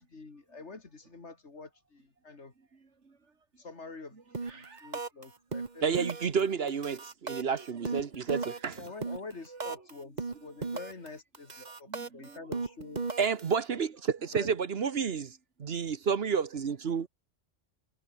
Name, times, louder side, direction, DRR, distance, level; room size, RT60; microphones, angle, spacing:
voice 1, 0.0-2.5 3.6-4.1 4.8-6.1 8.8-10.2 10.4-11.5 11.8-11.9 12.1-13.0 14.3-14.5, left 3 dB, 70° left, 2.9 m, -46 dB
voice 2, 2.6-3.2 4.1-5.0 7.3-8.0 8.6-8.8 9.5-10.2 10.7-11.1 11.6-12.8 16.9-17.0, right 4 dB, 75° right, 2.6 m, -54 dB
sound 1, 4.3-4.6 4.9-5.2 5.5-6.4 6.7-9.9 10.2-11.1 11.3-13.5, right 4 dB, 40° right, 1.6 m, -36 dB
voice 3, 5.8-8.9 13.2-15.3 15.6-17.1, right 6 dB, 60° right, 1.3 m, -30 dB
omnidirectional pair, 1.2 m